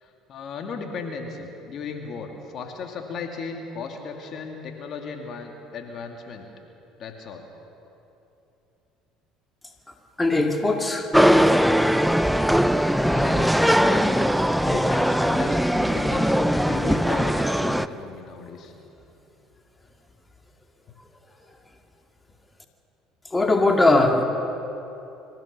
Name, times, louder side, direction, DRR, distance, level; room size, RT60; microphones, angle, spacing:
voice 1, 0.0-6.5 7.0-7.4 12.8-14.3 14.6-18.7, left 5 dB, 50° left, 3 dB, 2.4 m, -35 dB
voice 2, 10.2-11.1 23.3-24.2, left 2 dB, 15° left, 3 dB, 2.3 m, -20 dB
sound 1, 11.1-17.9, equal, ahead, 0.6 m, -20 dB
25.5 x 15.5 x 6.8 m, 2.9 s
hypercardioid pair, 65°, 0 cm